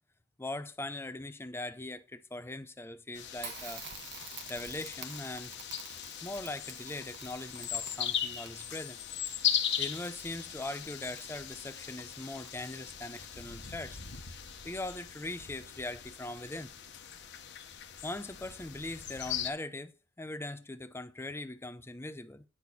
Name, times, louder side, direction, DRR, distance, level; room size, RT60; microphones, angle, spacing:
voice 1, 0.4-3.8 4.5-5.6 6.2-9.0 9.8-14.0 14.6-16.7 18.0-22.4, left 2 dB, 10° left, 0.5 m, -41 dB
sound 1, 3.2-19.5, left 9 dB, 55° left, 1.1 m, -39 dB
Crackle, 3.4-15.0, right 7 dB, 55° right, 1.4 m, -51 dB
10.0 x 6.4 x 4.1 m
head